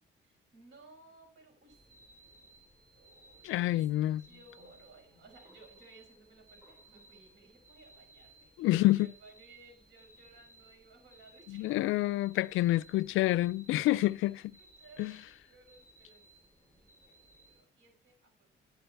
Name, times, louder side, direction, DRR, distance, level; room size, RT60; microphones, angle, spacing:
voice 1, 0.2-2.6 2.9-11.8 12.9-13.0 13.7-18.5, right 3 dB, 70° right, 6.0 m, -60 dB
sound 1, 1.7-17.6, right 1 dB, 10° right, 3.7 m, -60 dB
voice 2, 3.4-4.2 8.6-9.1 11.5-14.6 15.0-15.1, left 16 dB, 85° left, 0.4 m, -28 dB
11.5 x 9.4 x 4.6 m
cardioid pair, 90°, 20 cm